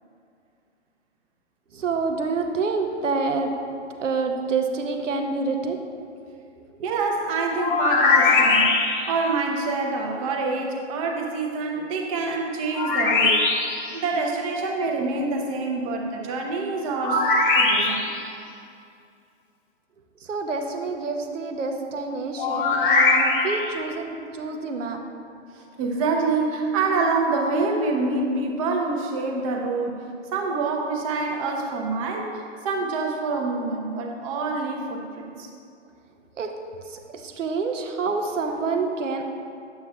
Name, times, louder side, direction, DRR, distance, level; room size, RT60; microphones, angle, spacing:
voice 1, 1.7-3.5 4.0-5.8 20.2-25.0 36.4-36.5 36.9-39.3, right 4 dB, 85° right, 4 dB, 0.9 m, -27 dB
voice 2, 6.8-8.8 9.1-13.4 13.9-18.2 22.5-22.6 23.2-23.3 25.5-35.5, right 3 dB, 30° right, 1 dB, 0.8 m, -26 dB
sound 1, 7.6-9.2 12.7-13.9 17.0-18.3 22.4-23.7, left 3 dB, 45° left, 0.9 m, -21 dB
9.3 x 7.9 x 2.3 m, 2.5 s
hypercardioid pair, 135°, 36 cm